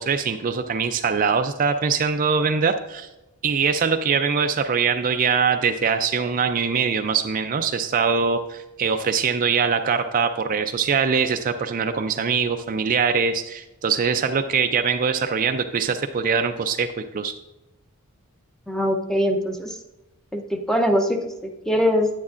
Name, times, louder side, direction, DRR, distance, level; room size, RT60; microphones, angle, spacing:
voice 1, 0.0-3.1 3.4-17.3, right 6 dB, 40° right, 7 dB, 0.4 m, -22 dB
voice 2, 18.7-19.8 20.3-22.2, equal, 5° left, 4 dB, 0.7 m, -22 dB
9.5 x 9.3 x 2.5 m, 0.99 s
head